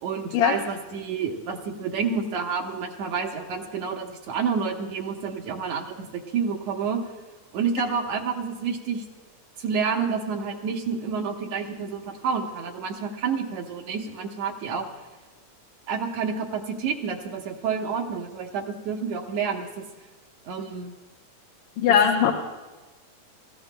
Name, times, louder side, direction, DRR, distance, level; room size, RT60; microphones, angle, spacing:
voice 1, 0.0-7.0 7.5-9.0 9.6-14.9 15.9-19.8 20.5-20.9 21.9-22.0, right 6 dB, 70° right, 1 dB, 2.1 m, -29 dB
voice 2, 21.8-22.3, left 8 dB, 75° left, 1 dB, 2.1 m, -19 dB
27.0 x 14.5 x 2.2 m, 1.2 s
omnidirectional pair, 3.3 m